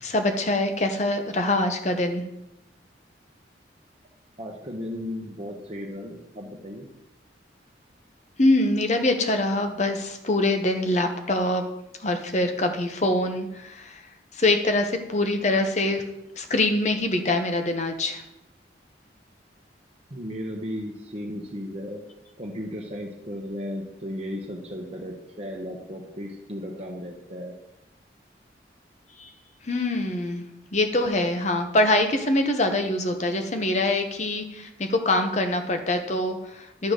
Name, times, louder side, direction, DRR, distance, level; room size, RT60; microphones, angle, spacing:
voice 1, 0.0-2.2 8.4-11.6 12.0-14.0 14.3-16.0 16.4-18.2 29.2-29.3 29.6-30.4 30.7-36.9, left 2 dB, 40° left, 6 dB, 0.9 m, -24 dB
voice 2, 4.4-6.9 20.1-22.0 22.4-27.5, equal, 35° right, -1 dB, 0.9 m, -35 dB
10.5 x 3.8 x 6.6 m, 0.86 s
head